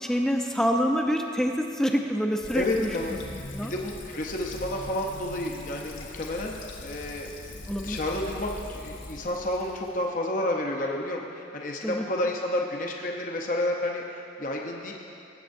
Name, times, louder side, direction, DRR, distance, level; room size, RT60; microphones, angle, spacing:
voice 1, 0.0-3.0 3.3-3.7 7.7-8.0 11.8-12.0, equal, 5° left, 2 dB, 0.5 m, -26 dB
Fill (with liquid), 2.4-10.1, left 2 dB, 85° left, 1.1 m, -41 dB
voice 2, 2.5-3.2 3.7-7.3 7.8-14.9, left 1 dB, 45° left, 0 dB, 0.7 m, -30 dB
19.0 x 8.2 x 2.6 m, 2.7 s
head